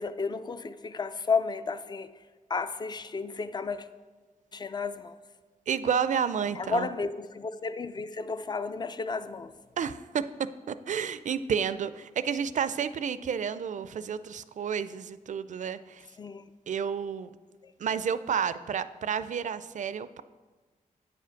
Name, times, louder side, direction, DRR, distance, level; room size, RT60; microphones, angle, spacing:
voice 1, 0.0-2.2 2.5-3.9 4.5-5.2 6.6-9.5 16.2-16.5 17.6-17.7, left 4 dB, 30° left, 12 dB, 0.4 m, -32 dB
voice 2, 5.7-6.9 9.8-10.2 10.7-16.1 16.7-17.3 17.8-20.2, right 7 dB, 60° right, 14 dB, 0.4 m, -30 dB
8.8 x 4.9 x 5.8 m, 1.3 s
cardioid pair, 85°, 14 cm